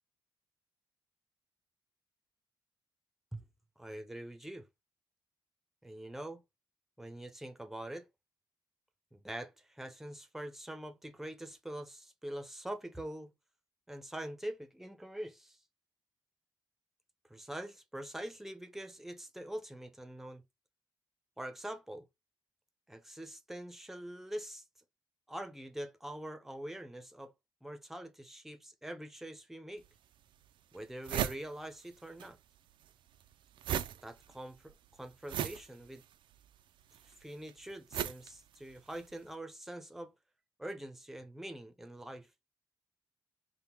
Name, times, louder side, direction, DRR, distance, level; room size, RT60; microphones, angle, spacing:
voice 1, 3.8-4.7 5.8-6.4 7.0-8.1 9.1-13.3 13.9-15.6 17.3-20.4 21.4-22.1 22.9-24.6 25.3-27.3 27.6-29.8 30.7-32.4 34.0-36.0 37.0-40.1 40.6-42.3, right 1 dB, 5° right, 0.6 m, -44 dB
sound 1, 29.8-29.9 30.4-30.5 30.7-32.3 32.5-39.1, right 10 dB, 80° right, 0.4 m, -38 dB
3.5 x 2.2 x 4.4 m
cardioid pair, 120°, 8 cm